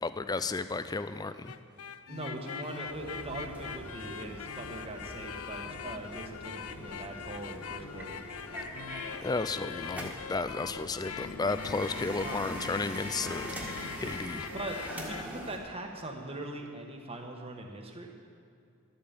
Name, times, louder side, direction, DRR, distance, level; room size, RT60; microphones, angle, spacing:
voice 1, 0.0-1.6 9.2-13.5 14.0-14.5, left 3 dB, 20° left, 12 dB, 0.4 m, -33 dB
sound 1, 1.3-15.2, left 7 dB, 85° left, 0.5 m, -42 dB
voice 2, 2.1-8.2 12.2-12.4 14.5-18.3, right 2 dB, 30° right, 2 dB, 1.3 m, -41 dB
sound 2, 2.8-15.6, right 1 dB, 5° right, 1.7 m, -43 dB
12.5 x 8.7 x 7.4 m, 2.4 s
head